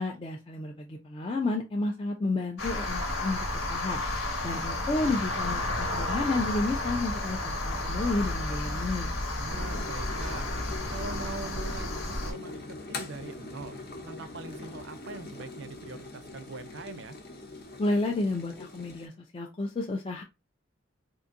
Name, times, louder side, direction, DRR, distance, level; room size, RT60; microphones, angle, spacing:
voice 1, 0.0-4.0 4.4-9.1 17.8-20.2, left 2 dB, 25° left, 0.3 m, -31 dB
sound 1, 2.6-12.3, left 2 dB, 90° left, 1.3 m, -32 dB
voice 2, 9.4-10.5 10.9-13.8 14.0-17.2, right 4 dB, 55° right, 0.4 m, -42 dB
sound 2, 9.5-19.1, left 2 dB, 50° left, 0.8 m, -42 dB
3.8 x 2.6 x 2.5 m
head